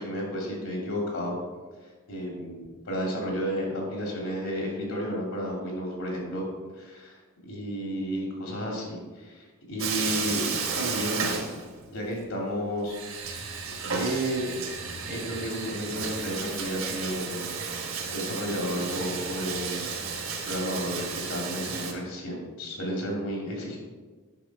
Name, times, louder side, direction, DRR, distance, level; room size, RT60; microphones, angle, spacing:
voice 1, 0.0-1.4 2.1-6.4 6.8-7.2 7.4-10.5 10.7-11.2 11.9-13.0 13.9-14.6 15.0-17.6 18.1-19.9 20.5-23.8, equal, 75° left, -1 dB, 2.8 m, -32 dB
Bathtub (filling or washing), 9.8-12.1 12.3-12.4 12.9-21.9, right 5 dB, 70° right, 1.5 m, -33 dB
9.2 x 5.9 x 4.8 m, 1.4 s
head